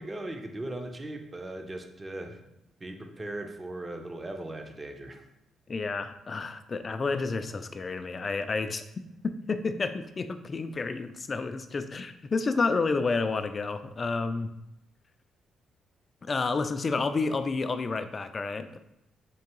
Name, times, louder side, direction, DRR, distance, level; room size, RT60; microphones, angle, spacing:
voice 1, 0.0-2.4 2.8-5.3, right 1 dB, 25° right, 5 dB, 0.6 m, -38 dB
voice 2, 5.7-8.8 9.2-14.5 16.2-18.8, left 4 dB, 35° left, 9 dB, 0.3 m, -30 dB
4.5 x 2.9 x 3.0 m, 0.87 s
cardioid pair, 90°, 0 cm